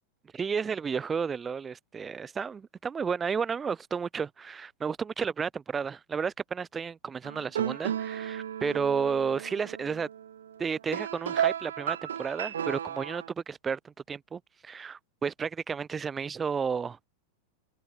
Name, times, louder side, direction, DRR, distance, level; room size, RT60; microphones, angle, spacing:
voice 1, 0.3-10.1 10.6-17.1, right 6 dB, 20° right, 7.1 m, -32 dB
sound 1, 7.2-13.3, right 9 dB, 65° right, 6.6 m, -34 dB
figure-of-eight pair, 90°, 0 cm